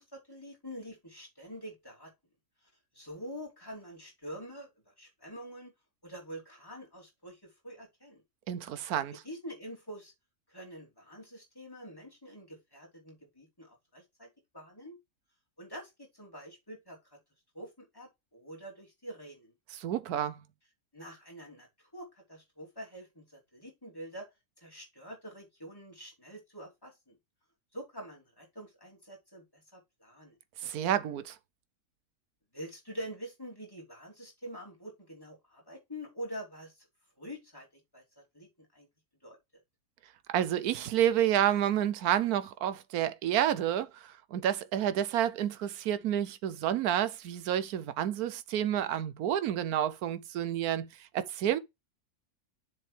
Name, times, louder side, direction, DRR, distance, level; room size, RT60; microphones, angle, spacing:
voice 1, 0.0-2.1 2.9-5.7 6.0-8.2 9.2-10.1 10.5-15.0 15.6-17.0 17.5-19.5 20.9-24.3 24.6-27.2 27.7-30.4 32.5-36.7 37.2-38.9 39.2-39.4, equal, 15° left, 3.3 m, -46 dB
voice 2, 8.5-9.2 19.7-20.4 30.6-31.4 40.3-50.9 51.1-51.6, right 10 dB, 80° right, 1.2 m, -29 dB
7.3 x 6.2 x 3.3 m
omnidirectional pair, 1.6 m